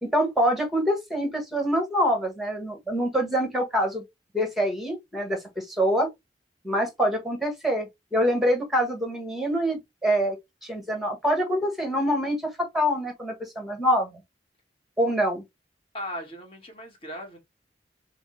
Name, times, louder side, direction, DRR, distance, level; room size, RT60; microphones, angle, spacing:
voice 1, 0.0-4.0 4.3-6.1 6.6-10.4 10.6-14.2 15.0-15.4, equal, ahead, 1.3 m, -25 dB
voice 2, 15.9-17.4, equal, 30° left, 1.3 m, -37 dB
6.1 x 2.1 x 3.1 m
head